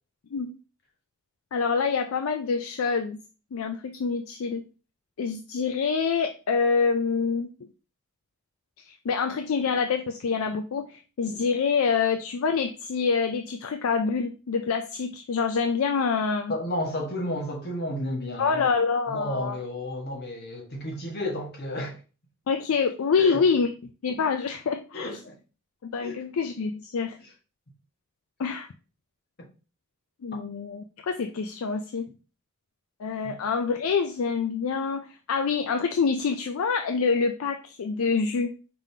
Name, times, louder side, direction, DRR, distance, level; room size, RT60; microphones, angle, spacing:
voice 1, 1.5-3.2 3.5-4.6 5.2-7.5 8.8-16.5 18.4-19.6 22.5-23.7 24.0-25.1 25.8-27.2 28.4-28.7 30.2-32.1 33.0-38.5, left 5 dB, 65° left, 0.4 m, -26 dB
voice 2, 16.5-18.7 19.1-22.0 23.2-23.4 24.9-25.3 26.0-26.2 27.2-27.3 33.2-33.3, left 1 dB, 45° left, 1.4 m, -32 dB
5.2 x 3.6 x 2.7 m
head